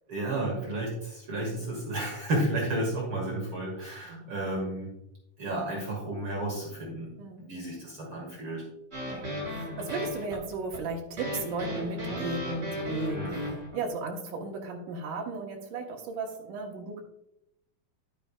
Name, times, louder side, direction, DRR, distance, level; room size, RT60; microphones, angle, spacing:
voice 1, 0.1-4.9 5.4-8.7 13.2-13.4, right 1 dB, 45° right, -2 dB, 2.6 m, -32 dB
voice 2, 4.0-4.4 7.2-7.6 9.1-17.0, right 3 dB, 80° right, 1 dB, 3.0 m, -36 dB
sound 1, 8.9-13.8, left 1 dB, 20° right, 4.2 m, -35 dB
11.5 x 9.4 x 2.5 m, 0.83 s
omnidirectional pair, 3.6 m